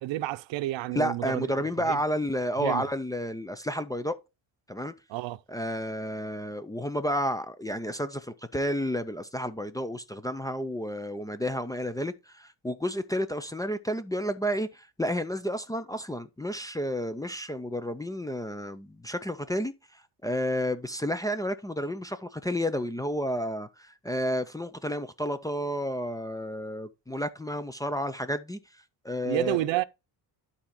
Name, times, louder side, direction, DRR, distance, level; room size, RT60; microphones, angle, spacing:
voice 1, 0.0-1.5 1.9-2.0 2.6-2.9 5.1-5.4 29.2-29.8, right 16 dB, 85° right, 0.6 m, -30 dB
voice 2, 0.9-4.2 4.7-4.9 5.5-28.6 29.0-29.6, equal, 10° left, 0.4 m, -31 dB
11.5 x 4.2 x 3.6 m
cardioid pair, 150°, 43 cm